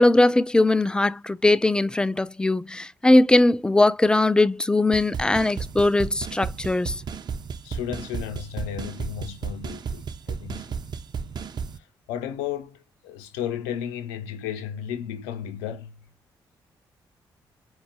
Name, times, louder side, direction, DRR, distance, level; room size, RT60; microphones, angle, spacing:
voice 1, 0.0-7.0, left 2 dB, 10° left, 0.4 m, -20 dB
sound 1, 4.9-11.8, right 6 dB, 40° right, 0.5 m, -33 dB
voice 2, 7.6-10.8 11.7-16.1, left 9 dB, 75° left, 0.6 m, -34 dB
4.1 x 2.3 x 3.8 m
figure-of-eight pair, 40°, 11 cm